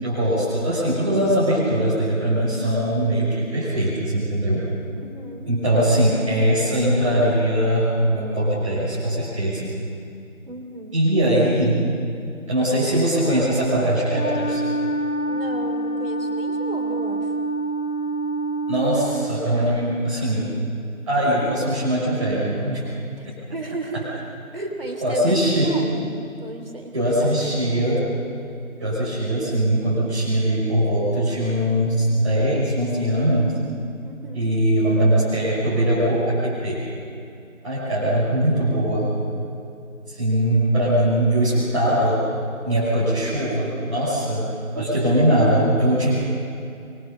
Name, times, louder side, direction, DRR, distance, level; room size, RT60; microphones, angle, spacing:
voice 1, 0.0-4.6 5.5-9.7 10.9-11.8 12.5-14.6 18.7-20.5 21.1-22.8 25.0-25.7 26.9-28.0 28.8-33.6 34.3-36.8 37.6-39.1 40.1-42.2 42.6-44.5 44.7-46.1, right 1 dB, 25° right, -12 dB, 6.1 m, -21 dB
voice 2, 5.0-5.5 10.4-11.1 15.3-17.3 23.2-24.2 24.5-26.1 26.4-27.8 34.0-34.5 44.6-45.0, right 2 dB, 40° right, 3 dB, 2.9 m, -35 dB
Wind instrument woodwind instrument, 14.1-19.5, right 2 dB, 90° left, 4.4 m, -26 dB
24.0 x 22.0 x 7.0 m, 2.5 s
figure-of-eight pair, 170°, 42 cm